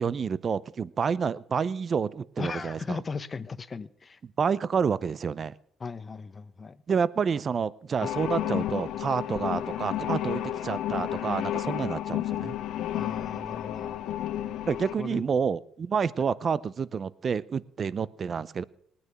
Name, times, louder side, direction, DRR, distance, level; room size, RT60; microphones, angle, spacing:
voice 1, 0.0-3.0 4.4-5.5 6.9-12.6 14.7-18.6, right 6 dB, 45° right, 0.6 m, -29 dB
voice 2, 2.4-4.2 5.8-6.8 12.9-14.0 15.0-15.2, left 4 dB, 30° left, 0.8 m, -37 dB
sound 1, 8.0-15.0, left 12 dB, 80° left, 1.2 m, -31 dB
19.5 x 9.7 x 6.0 m
cardioid pair, 95°, 0 cm